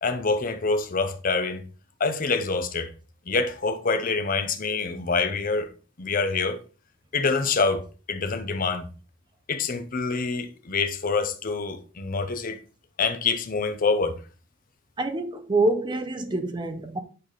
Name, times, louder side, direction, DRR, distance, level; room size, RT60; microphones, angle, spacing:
voice 1, 0.0-1.6 2.0-2.9 3.3-5.7 6.0-6.6 7.1-7.8 8.1-8.9 9.5-12.6 13.0-14.1, left 4 dB, 45° left, 0.7 m, -26 dB
voice 2, 15.0-17.0, right 2 dB, 25° right, 0.7 m, -26 dB
8.8 x 3.4 x 3.8 m
head